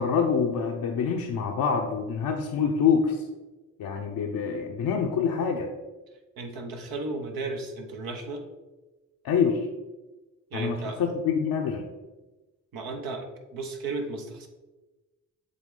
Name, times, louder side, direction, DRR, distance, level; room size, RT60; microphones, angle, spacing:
voice 1, 0.0-3.2 3.8-5.7 9.2-9.7 10.5-11.9, left 6 dB, 75° left, 1 dB, 0.7 m, -26 dB
voice 2, 6.4-8.4 10.5-11.0 12.7-14.5, right 3 dB, 85° right, 3 dB, 1.0 m, -34 dB
7.4 x 3.6 x 3.8 m, 1.1 s
supercardioid pair, 45°, 35 cm